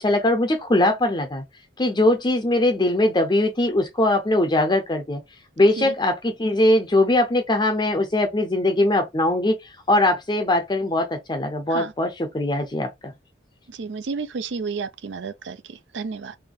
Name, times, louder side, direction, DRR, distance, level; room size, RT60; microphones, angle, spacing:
voice 1, 0.0-1.4 1.8-5.2 5.6-13.1, left 1 dB, 25° left, 0.5 m, -21 dB
voice 2, 13.7-16.4, right 4 dB, 70° right, 0.5 m, -31 dB
3.5 x 2.7 x 3.7 m
head